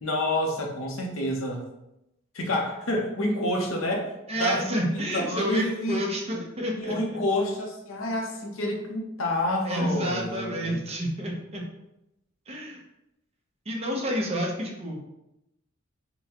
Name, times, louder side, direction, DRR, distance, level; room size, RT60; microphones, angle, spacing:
voice 1, 0.0-1.7 2.3-4.1 4.4-6.0 6.7-10.8, left 1 dB, 80° left, 1 dB, 0.8 m, -28 dB
voice 2, 4.3-7.0 9.6-11.6 12.5-12.8 13.7-15.0, equal, 30° right, -1 dB, 0.8 m, -29 dB
5.2 x 2.2 x 2.9 m, 0.87 s
head